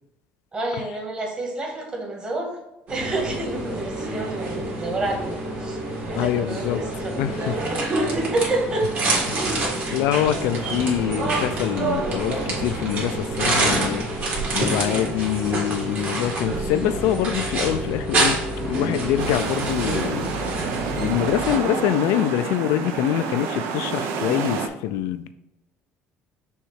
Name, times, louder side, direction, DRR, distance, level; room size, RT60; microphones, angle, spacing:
voice 1, 0.5-2.6 2.9-9.0 19.1-19.5, right 2 dB, 20° right, 0 dB, 1.6 m, -29 dB
sound 1, 2.9-21.6, right 2 dB, 40° right, 1.9 m, -26 dB
voice 2, 6.2-6.8 7.2-7.5 9.3-9.4 9.9-14.1 14.5-18.4 18.7-20.3 21.0-25.3, left 11 dB, 85° left, 11 dB, 0.3 m, -24 dB
sound 2, 19.2-24.7, right 6 dB, 75° right, 0.7 m, -29 dB
6.4 x 3.1 x 4.7 m, 0.92 s
cardioid pair, 140°, 4 cm